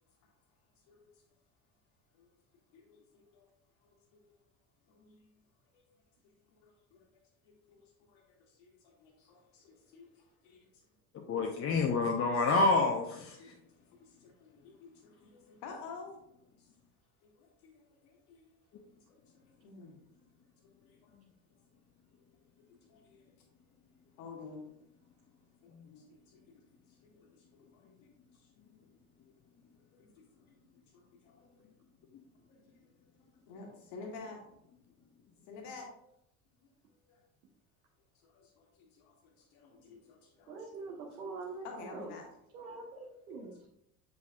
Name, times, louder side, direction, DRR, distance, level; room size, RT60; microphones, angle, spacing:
voice 1, 2.7-3.5 3.8-4.2 4.9-5.3 5.7-5.8 6.6-7.0 7.5-7.8 8.1-8.2 8.6-10.6 13.4-13.6 13.9-16.2 17.2-18.5 19.6-20.0 20.8-21.1 22.9-23.2 24.2-24.6 25.6-25.7 26.1-26.4 27.0-27.3 27.5-27.8 29.9-30.1 30.5-30.6 30.9-31.6 32.5-32.6 33.5-34.4 35.5-35.9 37.1-37.2 38.2-40.8 41.2-42.3, left 4 dB, 60° left, 1 dB, 1.7 m, -51 dB
voice 2, 11.3-13.5 25.9-26.0, left 3 dB, 30° left, 1 dB, 0.8 m, -28 dB
voice 3, 40.5-42.1 42.5-43.7, right 4 dB, 70° right, -3 dB, 1.1 m, -44 dB
7.7 x 5.2 x 2.4 m, 0.78 s
figure-of-eight pair, 65°, 45 cm